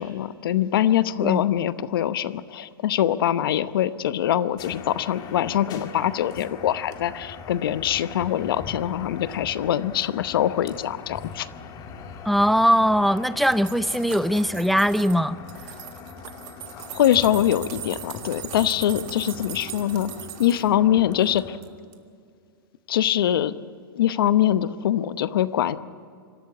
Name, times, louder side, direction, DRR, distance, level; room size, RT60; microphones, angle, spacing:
voice 1, 0.0-11.5 16.7-20.1 20.4-21.6 22.9-23.5 23.9-25.8, left 11 dB, 70° left, 14 dB, 0.9 m, -23 dB
sound 1, 4.6-21.6, left 6 dB, 35° left, 1.9 m, -41 dB
voice 2, 12.3-15.4, equal, ahead, 14 dB, 0.5 m, -21 dB
sound 2, 13.0-15.2 15.5-20.7 21.1-21.7 21.9-22.0, right 14 dB, 50° right, 1.8 m, -40 dB
25.0 x 13.0 x 8.5 m, 2.2 s
hypercardioid pair, 120°, 12 cm